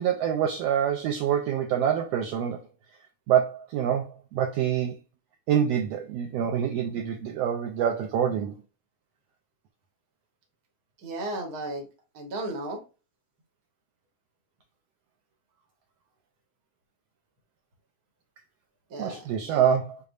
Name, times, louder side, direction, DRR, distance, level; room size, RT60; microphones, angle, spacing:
voice 1, 0.0-2.6 3.3-4.9 5.5-8.5 19.0-20.0, right 9 dB, 75° right, 1.5 m, -26 dB
voice 2, 11.0-11.8 12.1-12.8 18.9-19.7, right 1 dB, 45° right, 1.3 m, -35 dB
6.7 x 2.3 x 2.5 m
omnidirectional pair, 3.4 m